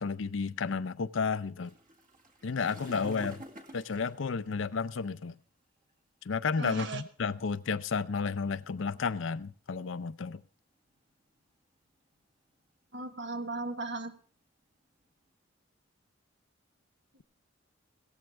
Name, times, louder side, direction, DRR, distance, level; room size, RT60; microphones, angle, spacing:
voice 1, 0.0-1.7 2.4-3.4 3.7-5.4 6.2-10.4, left 5 dB, 75° left, 0.5 m, -32 dB
sound 1, 1.6-5.1 5.9-6.1 6.8-6.9 7.2-7.4 8.0-8.5 9.3-10.4 10.9-11.4 11.8-12.2 12.6-15.3, equal, 45° right, 2.1 m, -51 dB
voice 2, 6.6-7.0 12.9-14.1, right 3 dB, 65° right, 1.3 m, -36 dB
17.0 x 14.0 x 3.4 m
head